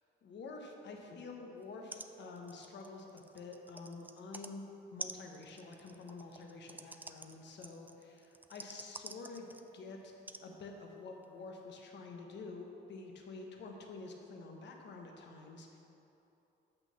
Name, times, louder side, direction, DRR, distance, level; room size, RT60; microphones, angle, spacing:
voice 1, 0.2-9.5 9.7-10.1 10.4-15.8, left 3 dB, 65° left, 2 dB, 1.1 m, -48 dB
sound 1, 1.6-1.7 1.9-2.1 2.4-4.5 5.0-9.8 10.3-10.4 11.2-11.3, right 2 dB, 10° right, 0.3 m, -49 dB
5.9 x 5.8 x 6.7 m, 3.0 s
cardioid pair, 90°, 20 cm